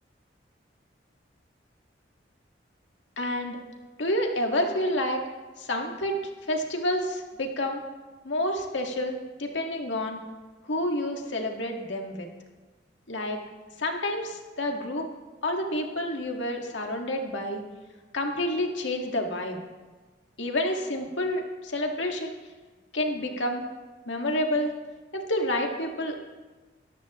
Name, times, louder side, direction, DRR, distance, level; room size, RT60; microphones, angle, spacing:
voice 1, 3.2-3.6 4.0-5.2 5.6-6.2 6.5-7.8 8.2-10.2 10.6-12.3 13.1-13.4 13.8-15.1 15.4-17.6 18.1-19.6 20.4-22.3 22.9-23.6 24.0-24.7 25.1-26.2, left 1 dB, 85° left, 2 dB, 1.8 m, -29 dB
18.5 x 14.0 x 3.1 m, 1.3 s
head